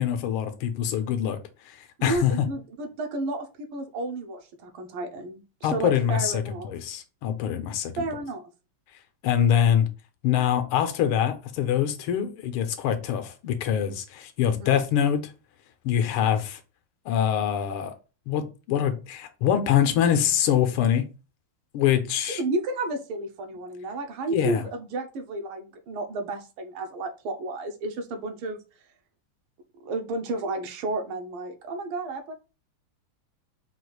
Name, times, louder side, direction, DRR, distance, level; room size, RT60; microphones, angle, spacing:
voice 1, 0.0-1.4 1.7-2.5 5.6-8.0 9.2-9.9 10.2-15.3 15.8-16.6 17.1-17.9 18.3-21.1 21.7-22.4 24.3-24.6, left 9 dB, 85° left, 1.6 m, -24 dB
voice 2, 2.0-6.7 8.0-8.4 14.4-14.8 22.3-28.6 29.8-32.3, right 2 dB, 80° right, 1.6 m, -32 dB
4.9 x 2.3 x 4.6 m
omnidirectional pair, 2.4 m